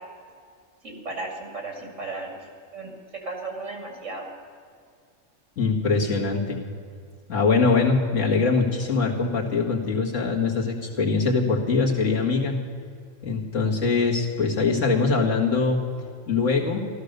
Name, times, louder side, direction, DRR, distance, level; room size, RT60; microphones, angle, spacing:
voice 1, 0.8-2.4 2.7-2.9 3.2-4.3, right 3 dB, 75° right, 2 dB, 2.9 m, -35 dB
voice 2, 5.6-6.6 7.3-12.6 13.2-15.8 16.3-16.8, left 4 dB, 75° left, -2 dB, 2.3 m, -22 dB
14.5 x 13.0 x 6.7 m, 2.2 s
omnidirectional pair, 1.3 m